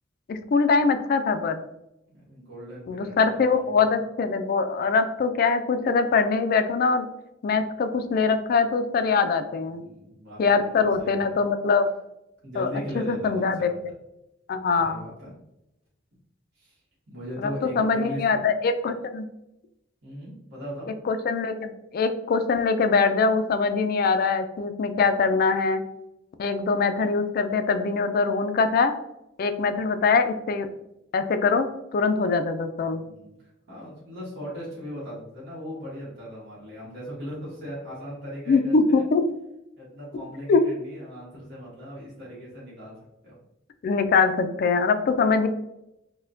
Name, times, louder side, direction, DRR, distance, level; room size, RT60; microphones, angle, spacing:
voice 1, 0.3-1.6 2.9-7.1 7.4-9.8 10.4-11.9 12.6-12.7 12.9-13.7 14.5-15.0 17.4-19.2 21.1-25.8 26.4-28.9 29.4-30.7 31.1-33.0 38.5-39.2 40.5-40.6 43.8-45.5, left 4 dB, 50° left, 9 dB, 0.3 m, -23 dB
voice 2, 2.1-3.8 9.6-11.4 12.4-13.8 14.8-15.4 16.6-16.8 17.1-18.4 20.0-20.9 33.0-39.0 39.8-42.9 43.2-43.4, equal, 60° right, -7 dB, 1.3 m, -39 dB
4.0 x 2.2 x 2.6 m, 0.88 s
head